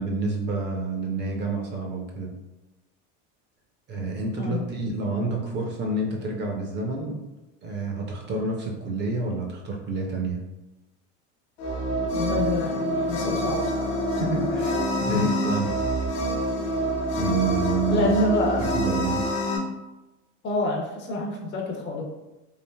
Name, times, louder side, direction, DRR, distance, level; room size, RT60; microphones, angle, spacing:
voice 1, 0.0-2.3 3.9-7.2 7.6-10.4 14.2-15.8 17.2-18.1 18.6-19.2, right 3 dB, 30° right, 1 dB, 0.4 m, -28 dB
sound 1, 11.6-19.6, equal, 85° left, 0.7 m, -26 dB
voice 2, 12.1-13.6 15.1-15.3 15.6-15.7 17.9-18.7 20.4-22.0, left 1 dB, 30° left, 1 dB, 0.4 m, -27 dB
3.2 x 2.4 x 2.2 m, 1.0 s
supercardioid pair, 125°, 36 cm